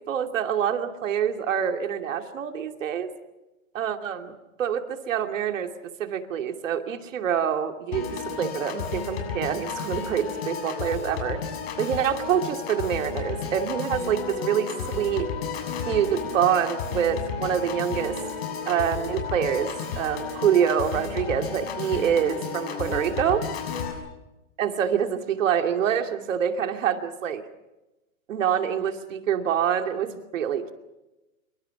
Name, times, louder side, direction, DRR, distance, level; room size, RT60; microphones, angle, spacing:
voice 1, 0.1-3.1 3.7-5.7 6.0-11.4 11.8-15.3 15.9-18.2 18.7-23.4 24.6-27.4 28.3-30.7, right 8 dB, 65° right, 6 dB, 2.7 m, -26 dB
Piano / Organ, 7.9-23.9, left 5 dB, 45° left, 7.0 m, -32 dB
27.0 x 24.0 x 6.0 m, 1.0 s
hypercardioid pair, 160°, 41 cm